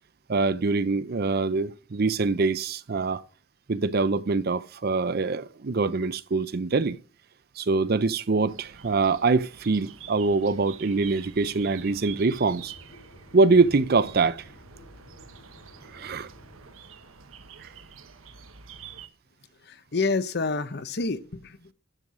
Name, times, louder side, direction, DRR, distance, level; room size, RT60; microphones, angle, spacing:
voice 1, 0.3-3.2 3.7-7.0 7.6-12.7 13.3-14.5 15.9-16.3 17.6-17.7, right 3 dB, 50° right, 0.5 m, -24 dB
sound 1, 8.5-19.1, right 7 dB, 85° right, 1.2 m, -47 dB
sound 2, 11.5-16.7, equal, 85° left, 2.6 m, -52 dB
voice 2, 19.6-21.7, left 3 dB, 55° left, 0.8 m, -28 dB
12.5 x 6.4 x 6.2 m
head